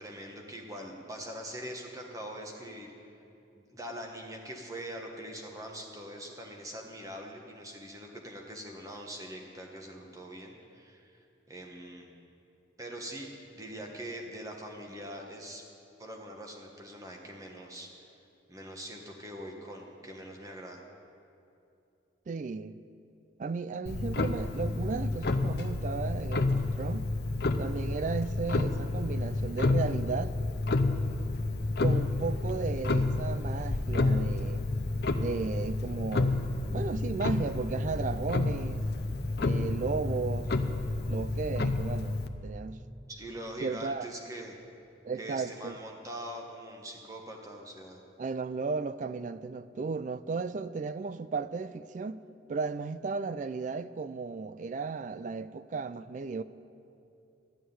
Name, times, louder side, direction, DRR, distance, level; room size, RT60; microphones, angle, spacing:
voice 1, 0.0-2.9 3.5-12.1 12.8-13.3 13.5-15.6 16.0-17.9 18.5-20.8 43.1-44.5 45.2-48.0, equal, 15° right, 1.2 m, -43 dB
voice 2, 22.3-22.8 23.4-27.1 27.6-30.3 31.8-34.7 35.2-38.8 39.4-40.5 41.1-42.8 43.6-44.1 45.0-45.8 48.2-52.2 52.5-56.4, right 4 dB, 40° right, 0.3 m, -35 dB
Clock, 23.9-42.3, left 2 dB, 55° left, 0.6 m, -30 dB
13.0 x 6.5 x 9.3 m
head